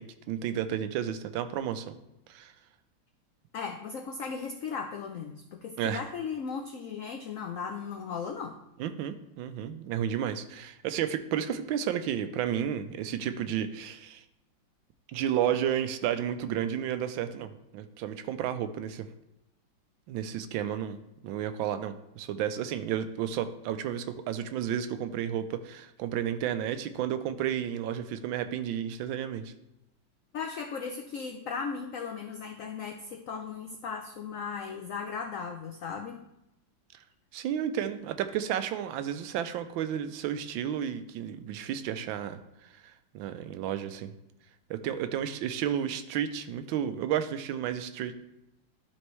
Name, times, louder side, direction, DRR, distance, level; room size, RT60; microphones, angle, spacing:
voice 1, 0.0-2.0 2.3-2.5 5.8-6.0 8.8-14.2 15.1-19.1 20.1-29.5 37.3-42.4 42.7-44.1 44.7-48.1, right 9 dB, 85° right, 10 dB, 1.3 m, -32 dB
voice 2, 3.5-8.6 30.3-36.2, left 5 dB, 85° left, 3 dB, 0.7 m, -37 dB
12.0 x 4.3 x 3.1 m, 0.89 s
omnidirectional pair, 2.1 m